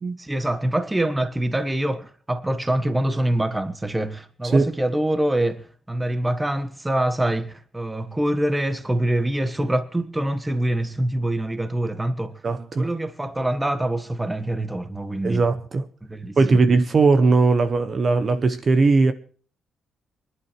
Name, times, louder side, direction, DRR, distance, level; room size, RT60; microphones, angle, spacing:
voice 1, 0.2-12.4 12.8-15.4 16.0-16.6, right 1 dB, 10° right, 1.2 m, -25 dB
voice 2, 12.4-12.9 15.2-15.8 16.4-19.1, right 3 dB, 30° right, 1.0 m, -19 dB
24.0 x 11.5 x 4.5 m
cardioid pair, 160°, 0 cm